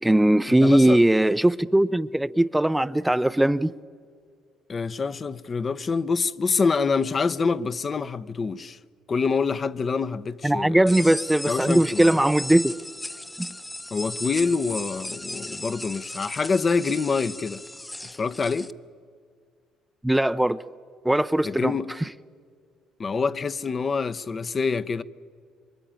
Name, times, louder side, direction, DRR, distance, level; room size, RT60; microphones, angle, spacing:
voice 1, 0.0-3.7 10.4-12.7 13.4-13.5 20.0-20.6 21.0-21.7, right 1 dB, 10° right, 0.6 m, -20 dB
voice 2, 0.6-1.0 4.7-8.8 9.1-11.1 11.5-12.2 13.9-17.6 18.1-18.7 21.4-21.9 23.0-25.0, left 4 dB, 40° left, 0.9 m, -26 dB
sound 1, 10.9-18.7, left 1 dB, 10° left, 0.9 m, -36 dB
26.5 x 23.5 x 9.0 m
supercardioid pair, 65°, 0 cm